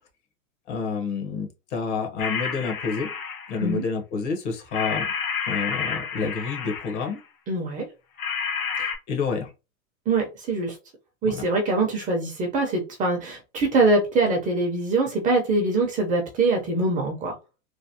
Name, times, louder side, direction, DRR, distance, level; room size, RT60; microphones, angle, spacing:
voice 1, 0.7-3.1 3.5-5.1 5.5-7.2 8.8-9.5 11.2-11.4, left 5 dB, 55° left, 4 dB, 1.1 m, -29 dB
sound 1, 2.2-3.7 4.7-7.1 8.2-9.0, left 6 dB, 90° left, 1.1 m, -30 dB
voice 2, 7.5-7.8 10.1-10.7 11.2-17.3, right 2 dB, 20° right, 1 dB, 0.6 m, -23 dB
3.2 x 2.2 x 2.7 m, 0.28 s
hypercardioid pair, 130°, 41 cm